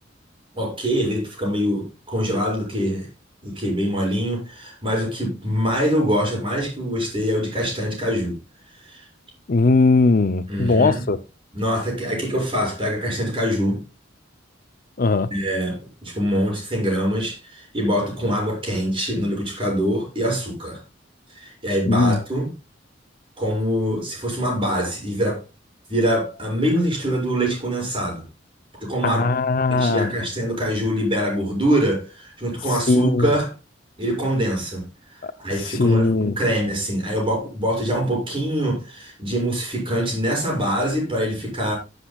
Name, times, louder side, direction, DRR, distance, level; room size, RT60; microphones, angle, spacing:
voice 1, 0.5-3.1 3.4-8.4 8.8-9.1 10.5-11.1 11.5-13.8 15.3-20.8 21.4-22.5 23.4-25.4 25.9-28.2 28.8-29.2 29.7-33.5 34.0-34.9 35.1-41.8, equal, 30° right, 7.2 m, -24 dB
voice 2, 9.5-11.2 15.0-15.3 21.9-22.2 29.0-30.1 32.9-33.3 35.8-36.3, left 3 dB, 50° left, 0.7 m, -18 dB
17.5 x 8.2 x 2.4 m
head